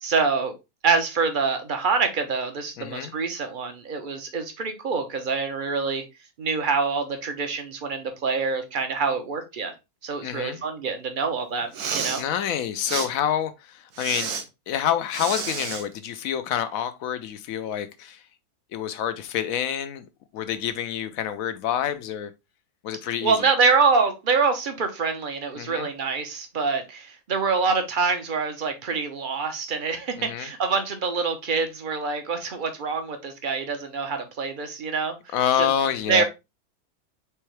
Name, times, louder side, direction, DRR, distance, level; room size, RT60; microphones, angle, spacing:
voice 1, 0.0-0.5 0.8-6.0 6.4-9.7 10.0-12.2 23.2-35.2 35.6-35.7 36.1-36.2, right 4 dB, 40° right, 0.9 m, -25 dB
voice 2, 2.8-3.2 10.2-10.6 12.2-14.3 14.7-18.2 18.7-20.1 20.3-22.3 22.8-23.5 25.6-25.9 30.2-30.5 35.3-36.2, left 9 dB, 70° left, 1.0 m, -27 dB
Respiratory sounds, 11.6-12.2 12.8-13.1 13.9-14.4 15.1-15.8, right 6 dB, 80° right, 1.4 m, -30 dB
4.6 x 3.4 x 3.2 m
omnidirectional pair, 1.6 m